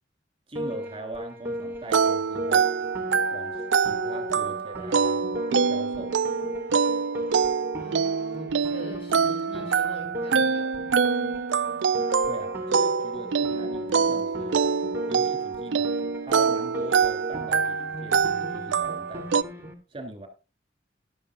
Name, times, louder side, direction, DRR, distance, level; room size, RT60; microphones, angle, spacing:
voice 1, 0.5-2.7 3.3-5.2 5.6-6.2 12.3-14.6 15.1-15.9 16.2-20.3, right 1 dB, 30° right, 3.2 m, -41 dB
Piano, 0.6-19.7, equal, 10° right, 2.8 m, -36 dB
sound 1, 1.9-19.4, right 6 dB, 80° right, 0.5 m, -25 dB
voice 2, 7.8-10.7, equal, 30° left, 7.1 m, -44 dB
15.5 x 12.0 x 2.5 m
head